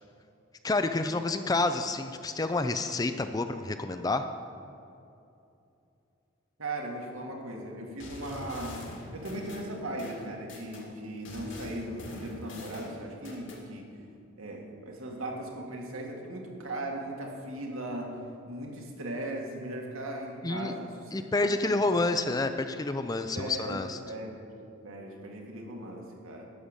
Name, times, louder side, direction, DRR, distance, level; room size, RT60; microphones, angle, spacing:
voice 1, 0.6-4.3 20.4-20.7 21.1-24.0, left 2 dB, 20° left, 9 dB, 0.4 m, -29 dB
voice 2, 6.6-8.8 9.1-13.8 14.4-21.7 23.3-24.4 24.8-26.5, right 1 dB, 80° right, 0 dB, 1.9 m, -38 dB
sound 1, 8.0-10.9 11.3-13.6, left 1 dB, 60° left, 2.1 m, -44 dB
11.5 x 6.7 x 7.2 m, 2.7 s
head